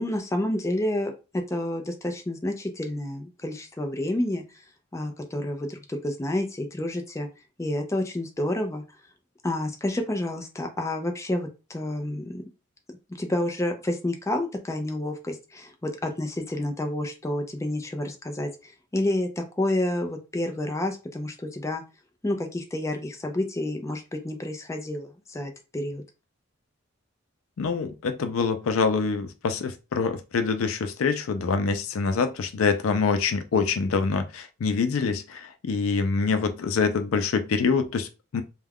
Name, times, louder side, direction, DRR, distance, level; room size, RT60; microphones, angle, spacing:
voice 1, 0.0-4.4 4.9-7.3 7.6-8.8 9.4-12.4 13.1-21.8 22.2-26.0, left 1 dB, 15° left, 0.4 m, -29 dB
voice 2, 27.6-38.4, left 5 dB, 85° left, 0.4 m, -25 dB
2.3 x 2.2 x 3.4 m
head